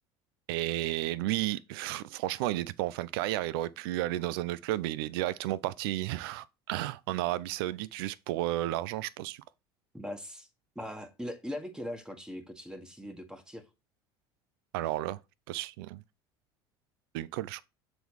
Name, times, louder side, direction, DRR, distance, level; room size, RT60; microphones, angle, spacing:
voice 1, 0.5-9.4 14.7-15.2 15.5-16.0 17.1-17.6, right 15 dB, 80° right, 0.5 m, -32 dB
voice 2, 9.9-10.5 10.7-13.6, equal, 5° right, 1.5 m, -40 dB
6.9 x 4.1 x 4.7 m
supercardioid pair, 90°, 12 cm